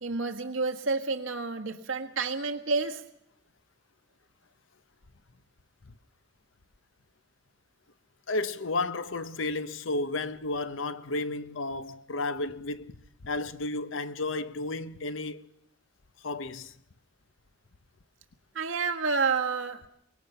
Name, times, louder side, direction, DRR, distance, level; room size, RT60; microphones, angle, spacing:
voice 1, 0.0-3.0 18.5-19.8, right 4 dB, 90° right, 1.6 m, -29 dB
voice 2, 8.3-15.5 16.2-16.8, left 2 dB, 85° left, 0.9 m, -33 dB
23.5 x 20.0 x 5.7 m
head